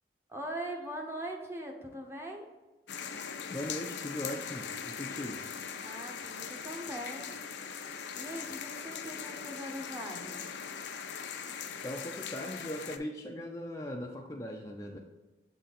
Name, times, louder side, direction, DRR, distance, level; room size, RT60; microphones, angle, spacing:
voice 1, 0.3-2.5 5.8-7.4 8.1-10.5, right 1 dB, 15° right, 2 dB, 0.8 m, -41 dB
sound 1, 2.9-13.0, left 7 dB, 80° left, 0.5 m, -40 dB
voice 2, 3.5-5.4 11.8-15.0, left 1 dB, 15° left, 1 dB, 0.4 m, -39 dB
7.1 x 3.9 x 4.2 m, 1.2 s
head